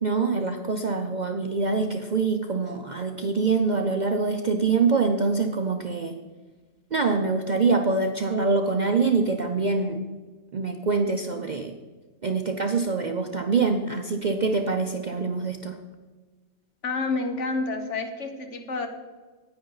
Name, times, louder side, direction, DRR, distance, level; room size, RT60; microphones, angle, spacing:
voice 1, 0.0-6.2 6.9-10.0 10.5-11.7 12.2-15.8, right 4 dB, 50° right, 5 dB, 0.5 m, -25 dB
voice 2, 16.8-18.9, left 3 dB, 65° left, 5 dB, 1.5 m, -29 dB
10.0 x 9.5 x 3.9 m, 1.3 s
omnidirectional pair, 1.4 m